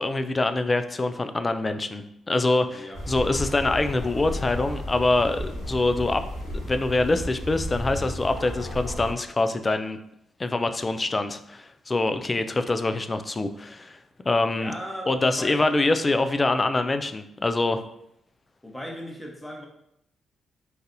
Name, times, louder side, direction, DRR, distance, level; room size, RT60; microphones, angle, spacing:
voice 1, 0.0-6.2 6.6-10.0 10.4-14.0 14.2-14.7 15.1-17.8, left 2 dB, 35° left, 9 dB, 0.3 m, -25 dB
voice 2, 2.6-3.0 14.5-15.7 18.6-19.7, equal, 10° left, 0 dB, 1.0 m, -37 dB
sound 1, 2.9-9.1, left 1 dB, 85° left, 1.5 m, -33 dB
3.9 x 2.5 x 2.6 m, 0.77 s
hypercardioid pair, 40°, 0 cm